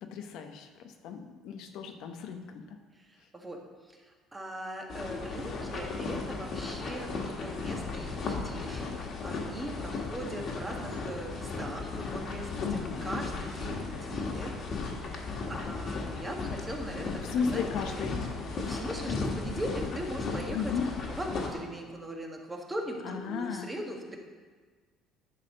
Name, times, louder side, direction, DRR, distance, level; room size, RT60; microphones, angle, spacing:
voice 1, 0.0-2.6 12.5-13.2 17.1-18.2 19.1-19.2 20.5-20.9 23.0-23.7, left 6 dB, 70° left, 5 dB, 0.8 m, -35 dB
voice 2, 2.9-14.5 14.9-17.6 17.9-18.1 18.5-20.7 21.1-24.2, right 1 dB, 15° right, 1 dB, 1.5 m, -40 dB
sound 1, 4.9-21.5, left 3 dB, 50° left, 1.6 m, -35 dB
10.0 x 4.2 x 6.5 m, 1.5 s
cardioid pair, 105°, 0 cm